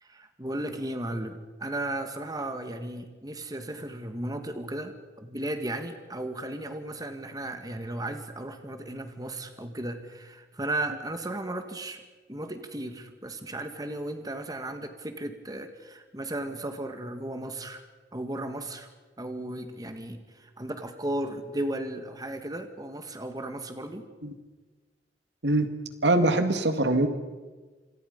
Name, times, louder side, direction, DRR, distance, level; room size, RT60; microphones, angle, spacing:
voice 1, 0.0-12.0 12.3-17.8 18.1-18.9 19.2-24.1, right 1 dB, 20° right, 7 dB, 1.9 m, -35 dB
voice 2, 26.0-27.1, right 2 dB, 85° right, 8 dB, 2.1 m, -23 dB
27.0 x 26.0 x 5.4 m, 1.3 s
head